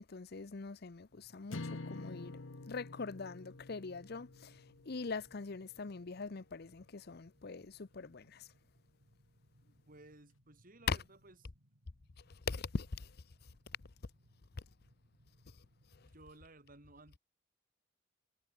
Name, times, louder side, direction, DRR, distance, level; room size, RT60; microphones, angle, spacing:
voice 1, 0.0-2.4 2.7-8.5 10.9-11.0 12.2-13.2 13.4-13.5 15.6-15.7 15.9-16.1, left 4 dB, 55° left, 0.7 m, -42 dB
sound 1, 1.1-16.2, equal, 70° right, 5.2 m, -70 dB
sound 2, 1.5-5.9, left 2 dB, 80° left, 1.1 m, -48 dB
voice 2, 9.9-11.4 16.0-17.2, right 2 dB, 45° right, 3.4 m, -58 dB
head